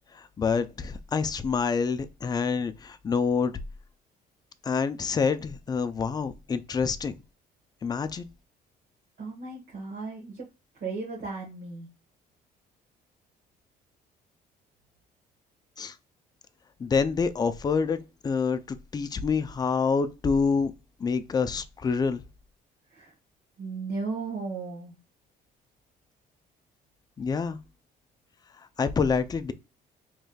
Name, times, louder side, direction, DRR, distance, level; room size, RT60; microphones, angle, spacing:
voice 1, 0.1-3.5 4.6-7.1 7.8-8.3 15.8-15.9 16.8-18.0 18.2-20.7 21.0-22.2 27.2-27.6 28.8-29.5, left 5 dB, 25° left, 0.4 m, -27 dB
voice 2, 9.2-10.4 10.8-11.9 22.9-23.1 23.6-24.9, right 4 dB, 60° right, 1.3 m, -35 dB
4.8 x 3.2 x 2.3 m
cardioid pair, 110°, 17 cm